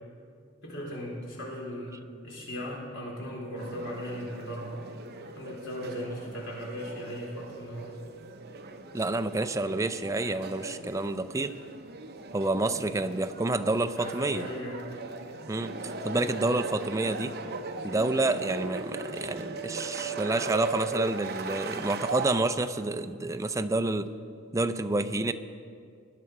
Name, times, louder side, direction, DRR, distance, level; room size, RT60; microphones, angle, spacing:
voice 1, 0.6-2.0 2.2-4.8 5.3-8.0 14.0-14.8 24.5-24.6, equal, 60° left, -3 dB, 4.2 m, -37 dB
sound 1, 3.6-22.3, right 3 dB, 50° right, 0.8 m, -39 dB
voice 2, 8.9-11.6 12.3-14.5 15.5-17.3 17.8-24.1 24.5-25.3, right 2 dB, 15° right, 10 dB, 0.5 m, -29 dB
19.5 x 10.0 x 4.7 m, 2.2 s
head